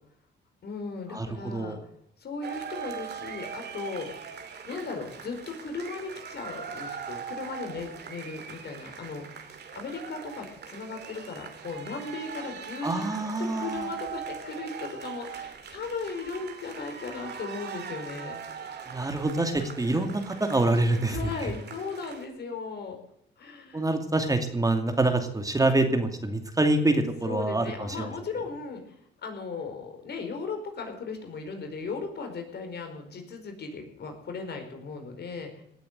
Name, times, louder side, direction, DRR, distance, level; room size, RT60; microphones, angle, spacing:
voice 1, 0.6-1.8 2.2-4.1 4.7-9.3 9.7-13.1 13.4-18.4 21.1-23.0 23.4-23.9 27.2-35.6, left 4 dB, 55° left, 4 dB, 4.9 m, -37 dB
sound 1, 2.4-22.3, right 7 dB, 55° right, 3.1 m, -41 dB
voice 2, 12.8-13.9 18.9-21.2 23.7-28.1, right 2 dB, 15° right, 6 dB, 2.5 m, -26 dB
18.5 x 8.9 x 8.1 m, 0.75 s
cardioid pair, 90°, 20 cm